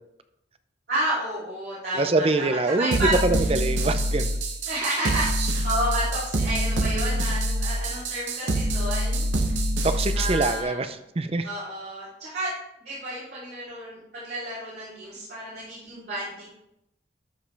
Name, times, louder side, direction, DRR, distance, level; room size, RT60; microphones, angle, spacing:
voice 1, 0.9-3.5 4.7-9.6 10.1-10.8 11.4-12.5 12.8-16.5, right 1 dB, 60° right, -10 dB, 3.2 m, -31 dB
voice 2, 1.9-4.3 9.8-10.9 11.2-11.5, right 2 dB, 30° right, 10 dB, 0.5 m, -24 dB
sound 1, 2.9-10.6, right 1 dB, 80° right, 1.1 m, -25 dB
12.5 x 5.2 x 3.4 m, 0.83 s
head